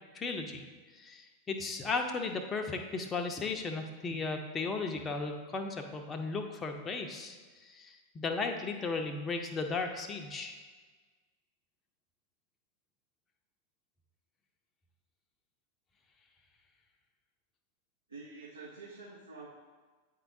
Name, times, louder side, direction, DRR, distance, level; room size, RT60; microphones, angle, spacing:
voice 1, 0.1-0.6 1.0-7.4 7.6-10.6, left 4 dB, 20° left, 4 dB, 0.6 m, -35 dB
voice 2, 18.1-19.5, right 3 dB, 75° right, -5 dB, 0.8 m, -47 dB
8.9 x 4.6 x 2.6 m, 1.4 s
figure-of-eight pair, 90°, 0 cm